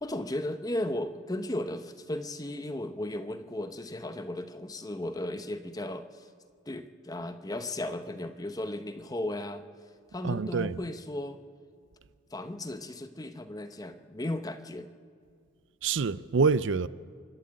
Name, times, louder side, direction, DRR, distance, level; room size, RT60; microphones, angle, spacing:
voice 1, 0.0-6.3 6.7-9.6 10.1-11.4 12.3-14.9, left 1 dB, 20° left, 0.8 m, -35 dB
voice 2, 10.2-10.8 15.8-16.9, right 4 dB, 70° right, 0.5 m, -26 dB
25.0 x 12.5 x 8.7 m
head